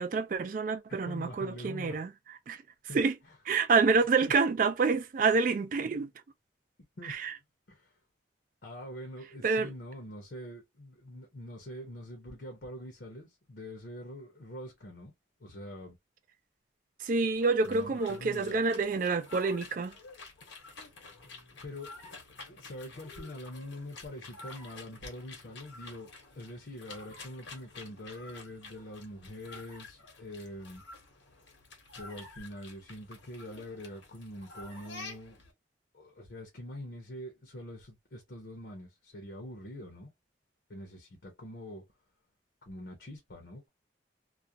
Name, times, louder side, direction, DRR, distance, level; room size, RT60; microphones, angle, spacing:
voice 1, 0.0-2.1 2.5-2.6 2.9-3.1 3.5-6.1 7.0-7.3 9.4-9.7 17.0-19.9, right 4 dB, 45° right, 0.3 m, -27 dB
voice 2, 0.9-2.0 2.9-3.0 4.2-4.3 7.0-7.2 7.7-7.9 8.6-15.1 15.4-16.0 17.6-18.6 21.6-22.1 22.4-30.8 32.0-35.4 35.9-40.1 40.7-41.8 42.7-43.7, left 1 dB, 60° left, 0.7 m, -44 dB
sound 1, 17.3-35.5, left 3 dB, 85° left, 1.0 m, -50 dB
2.4 x 2.1 x 2.6 m
head